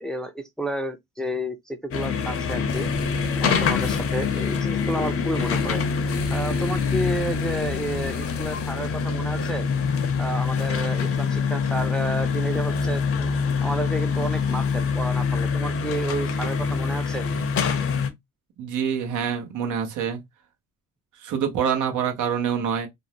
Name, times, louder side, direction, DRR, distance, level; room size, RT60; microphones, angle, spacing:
voice 1, 0.0-2.9 3.4-5.8 6.3-9.6 10.2-13.3 13.6-17.3, right 1 dB, ahead, 0.4 m, -31 dB
sound 1, 1.9-18.1, left 5 dB, 50° left, 0.6 m, -25 dB
sound 2, 2.6-9.0, left 3 dB, 90° left, 0.7 m, -38 dB
voice 2, 18.6-20.2 21.2-22.9, right 7 dB, 80° right, 0.9 m, -26 dB
2.6 x 2.0 x 2.8 m
cardioid pair, 90°, 30 cm